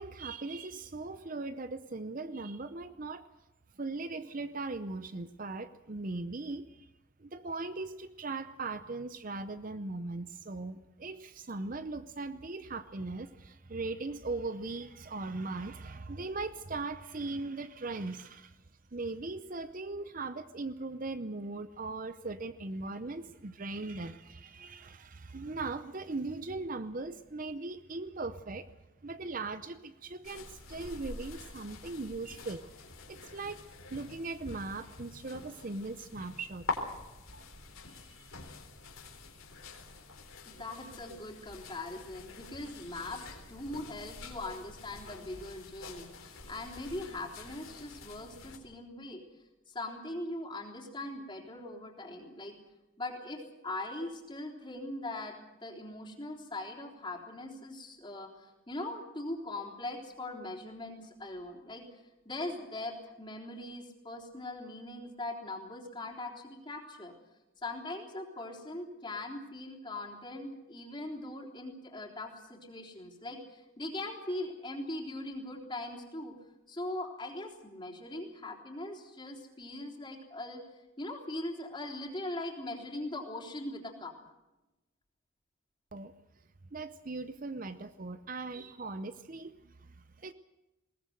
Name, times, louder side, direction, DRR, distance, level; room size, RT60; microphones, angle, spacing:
voice 1, 0.0-3.3 3.7-6.9 7.2-18.6 18.9-28.7 29.0-32.6 33.1-36.7 37.3-37.5 37.9-38.4 85.9-86.1 86.7-90.3, right 3 dB, 40° right, 12 dB, 0.7 m, -39 dB
sound 1, 30.2-48.6, left 3 dB, 75° left, 3.9 m, -46 dB
voice 2, 40.5-49.2 49.7-52.5 53.0-67.2 67.6-76.3 76.7-80.6 81.0-84.1, left 2 dB, 20° left, 1 dB, 3.6 m, -41 dB
21.0 x 19.0 x 8.0 m, 1.0 s
head